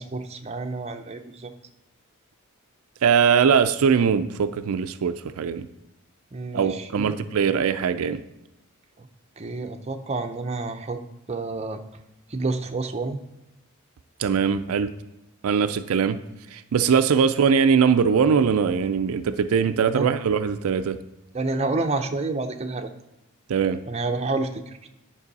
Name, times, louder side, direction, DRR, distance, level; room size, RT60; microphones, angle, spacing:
voice 1, 0.0-1.5 6.3-7.1 9.0-9.1 9.4-11.0 11.3-11.8 12.3-13.2 19.9-20.1 21.3-22.9 23.9-24.9, right 3 dB, 30° right, 5 dB, 0.6 m, -29 dB
voice 2, 3.0-5.6 6.5-8.2 14.2-14.9 15.4-16.2 16.5-21.0 23.5-23.8, right 6 dB, 75° right, 10 dB, 0.4 m, -21 dB
9.7 x 5.4 x 4.1 m, 0.92 s
head